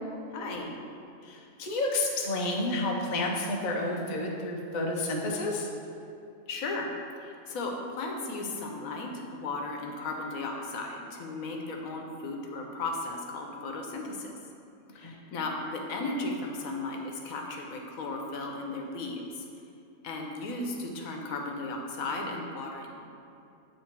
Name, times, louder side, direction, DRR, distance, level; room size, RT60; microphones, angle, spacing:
voice 1, 0.3-0.7 6.5-6.9 7.2-14.3 14.9-19.4 20.0-22.9, left 2 dB, 80° left, 1 dB, 1.2 m, -35 dB
voice 2, 1.2-5.7 15.0-15.1, left 2 dB, 40° left, -1 dB, 0.7 m, -30 dB
8.5 x 3.2 x 4.4 m, 2.7 s
omnidirectional pair, 1.4 m